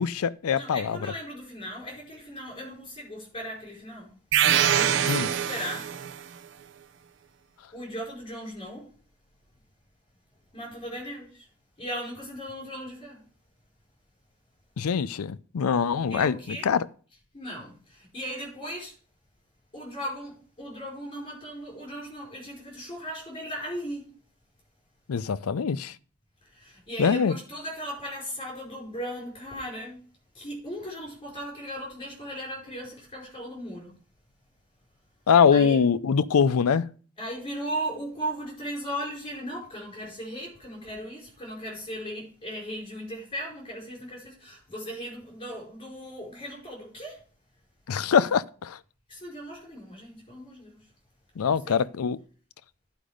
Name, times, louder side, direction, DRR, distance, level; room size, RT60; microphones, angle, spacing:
voice 1, 0.0-1.1 5.1-5.3 14.8-16.9 25.1-26.0 27.0-27.3 35.3-36.9 47.9-48.8 51.4-52.2, left 6 dB, 85° left, 0.4 m, -23 dB
voice 2, 0.5-4.2 4.7-5.9 7.7-8.9 10.5-11.5 11.8-13.2 16.1-16.7 17.3-18.9 19.7-24.1 26.4-30.0 30.3-34.0 35.5-35.8 37.2-47.2 49.1-50.9 51.4-51.8, equal, 25° left, 4.8 m, -37 dB
sound 1, 4.3-6.2, right 10 dB, 55° right, 0.4 m, -24 dB
10.0 x 5.1 x 5.0 m
head